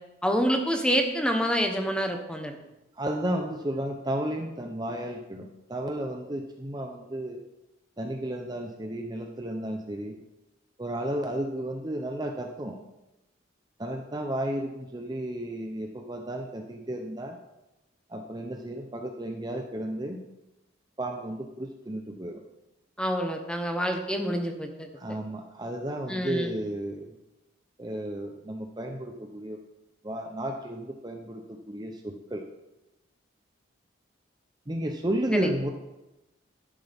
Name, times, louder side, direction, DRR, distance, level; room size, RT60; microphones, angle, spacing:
voice 1, 0.2-2.6 23.0-24.9 26.1-26.5 35.3-35.5, equal, 5° left, 4 dB, 1.0 m, -27 dB
voice 2, 2.9-7.4 8.0-10.2 10.8-12.8 13.8-17.4 18.1-20.2 21.0-22.4 25.0-27.2 27.8-29.6 30.0-32.4 34.7-35.7, right 1 dB, 20° right, 2 dB, 0.7 m, -33 dB
12.0 x 11.0 x 3.5 m, 0.98 s
head